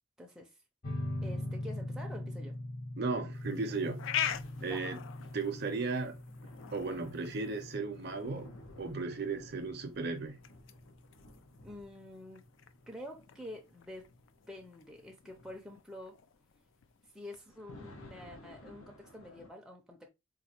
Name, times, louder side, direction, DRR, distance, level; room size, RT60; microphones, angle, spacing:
voice 1, 0.2-0.6 1.2-2.6 4.6-4.9 11.6-12.4 12.9-14.1 14.5-16.2 17.1-20.1, left 1 dB, 5° right, 0.5 m, -48 dB
sound 1, 0.8-11.8, left 1 dB, 40° left, 0.9 m, -42 dB
voice 2, 3.0-4.1 4.6-5.0 5.3-6.2 6.7-10.4, right 4 dB, 50° right, 0.6 m, -35 dB
sound 2, 3.3-17.4, left 9 dB, 65° left, 0.3 m, -44 dB
sound 3, 3.6-19.5, left 1 dB, 90° left, 0.8 m, -56 dB
3.9 x 2.6 x 2.9 m
head